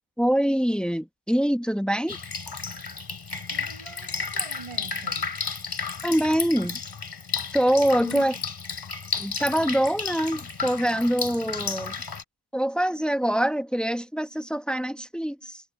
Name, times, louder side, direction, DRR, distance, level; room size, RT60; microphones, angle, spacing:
voice 1, 0.2-2.2 6.0-6.8 7.5-8.3 9.2-11.9 12.5-15.6, equal, ahead, 1.3 m, -24 dB
Drip, 2.1-12.2, left 5 dB, 50° left, 3.7 m, -33 dB
voice 2, 3.5-5.4 8.0-8.4, right 5 dB, 70° right, 6.8 m, -43 dB
wide cardioid pair, 85°, 50 cm